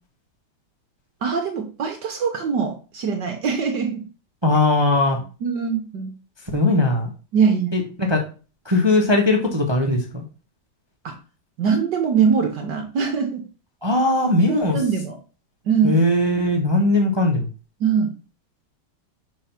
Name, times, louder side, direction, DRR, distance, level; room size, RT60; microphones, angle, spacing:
voice 1, 1.2-4.0 5.4-6.1 7.3-7.7 11.0-11.1 11.6-13.4 14.5-15.2 15.6-16.0 17.8-18.1, right 6 dB, 65° right, 4 dB, 1.5 m, -22 dB
voice 2, 4.4-5.2 6.5-7.1 7.7-8.2 8.6-10.2 13.8-14.8 15.8-17.5, left 2 dB, 20° right, 1 dB, 0.8 m, -19 dB
5.6 x 4.7 x 5.7 m, 0.36 s
omnidirectional pair, 2.1 m